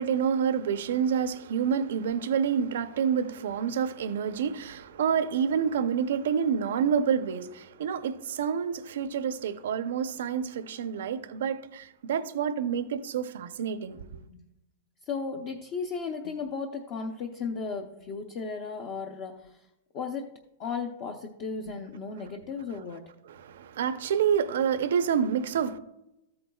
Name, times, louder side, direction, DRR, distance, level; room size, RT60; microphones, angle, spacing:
voice 1, 0.0-14.1 23.3-25.8, right 7 dB, 70° right, 0.7 m, -28 dB
voice 2, 15.0-19.7 19.9-20.3 20.6-23.0, left 5 dB, 30° left, 0.7 m, -35 dB
14.0 x 8.6 x 2.3 m
supercardioid pair, 180°, 0 cm